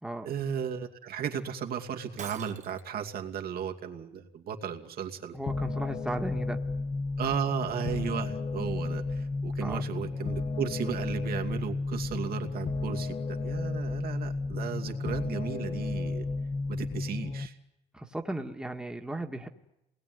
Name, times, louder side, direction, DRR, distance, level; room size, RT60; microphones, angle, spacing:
voice 1, 0.2-5.3 7.2-16.2 16.7-17.5, right 8 dB, 65° right, 3 dB, 2.7 m, -35 dB
Shatter, 2.2-3.0, right 8 dB, 45° right, 1.4 m, -44 dB
voice 2, 5.3-6.6 9.6-9.8 17.9-19.5, right 1 dB, 5° right, 3 dB, 1.9 m, -35 dB
sound 1, 5.5-17.5, left 3 dB, 30° left, 1.5 m, -32 dB
28.0 x 20.0 x 9.6 m, 0.90 s
cardioid pair, 110°, 17 cm